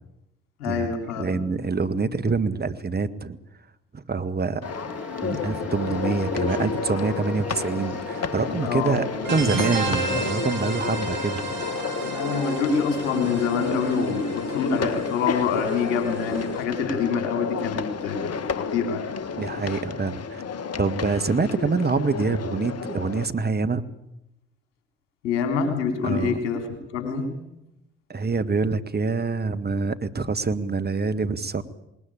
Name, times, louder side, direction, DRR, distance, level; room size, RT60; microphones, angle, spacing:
voice 1, 0.6-1.4 5.3-5.4 8.6-9.0 12.0-19.1 25.2-27.4, left 5 dB, 80° left, 6 dB, 3.7 m, -26 dB
voice 2, 1.2-3.4 3.9-4.7 5.2-9.0 9.3-11.4 19.4-20.4 20.8-23.8 26.0-26.4 28.1-31.6, right 4 dB, 30° right, 11 dB, 1.7 m, -26 dB
sound 1, 4.6-23.3, left 6 dB, 45° left, 1.7 m, -31 dB
sound 2, 4.6-16.5, equal, 5° right, 4.3 m, -40 dB
sound 3, 9.2-16.6, right 3 dB, 75° right, 3.6 m, -32 dB
20.5 x 20.0 x 8.6 m, 0.86 s
hypercardioid pair, 45°, 34 cm